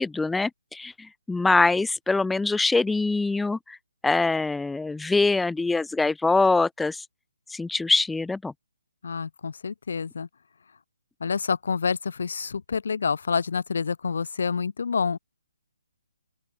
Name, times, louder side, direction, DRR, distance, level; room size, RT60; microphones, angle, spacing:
voice 1, 0.0-3.8 4.0-7.0 7.5-8.5, left 3 dB, 5° left, 0.3 m, -24 dB
voice 2, 9.0-10.3 11.2-15.2, left 5 dB, 60° left, 0.8 m, -28 dB
open air
hypercardioid pair, 175°, 0 cm